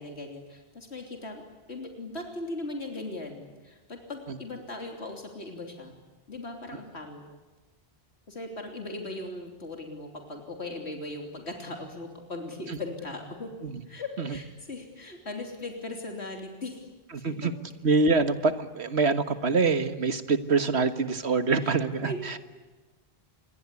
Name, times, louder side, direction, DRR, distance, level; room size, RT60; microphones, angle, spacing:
voice 1, 0.0-1.4 1.7-6.0 6.3-7.2 8.3-13.5 13.8-16.9 17.2-17.3 21.6-21.7 22.0-22.4, left 2 dB, 80° left, 3 dB, 3.5 m, -38 dB
voice 2, 17.8-22.4, right 4 dB, 80° right, 10 dB, 1.8 m, -25 dB
26.5 x 22.5 x 9.7 m, 1.2 s
omnidirectional pair, 1.1 m